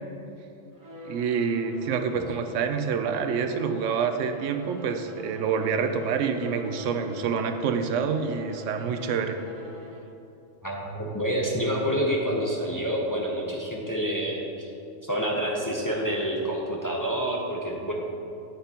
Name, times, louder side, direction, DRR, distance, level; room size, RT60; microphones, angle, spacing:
Bowed string instrument, 0.7-10.2, equal, 20° right, 0.8 m, -45 dB
voice 1, 1.1-9.4, right 6 dB, 80° right, 7 dB, 0.9 m, -27 dB
voice 2, 10.6-14.7 15.0-17.9, equal, 20° left, -2 dB, 0.7 m, -28 dB
8.8 x 8.7 x 2.9 m, 2.7 s
omnidirectional pair, 1.3 m